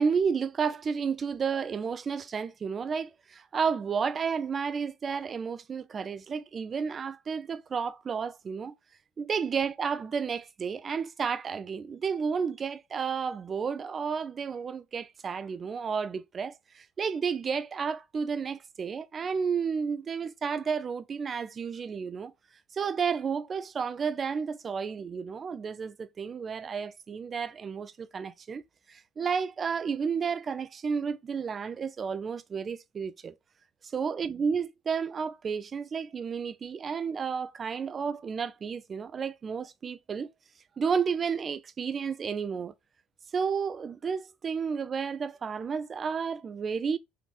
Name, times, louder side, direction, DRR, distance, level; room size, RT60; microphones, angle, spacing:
voice 1, 0.0-8.7 9.2-22.3 22.7-28.6 28.9-33.3 33.8-40.3 40.8-42.7 43.3-47.0, right 6 dB, 35° right, 0.4 m, -32 dB
3.5 x 2.8 x 2.4 m
hypercardioid pair, 65°, 0 cm